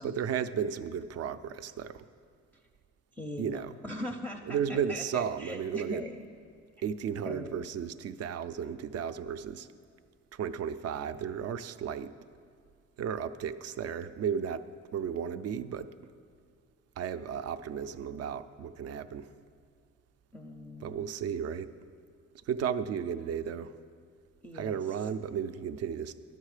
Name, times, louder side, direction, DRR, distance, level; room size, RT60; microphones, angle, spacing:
voice 1, 0.0-2.1 3.4-3.7 4.5-6.0 6.8-9.7 10.3-12.1 13.0-15.9 17.0-19.3 20.8-21.7 22.5-23.8 24.5-26.1, right 8 dB, 55° right, 12 dB, 0.4 m, -34 dB
voice 2, 3.1-6.1 7.3-7.6 20.3-21.1 24.4-25.0, left 1 dB, 5° left, 0 dB, 0.5 m, -41 dB
11.0 x 6.6 x 4.9 m, 2.1 s
cardioid pair, 90°, 30 cm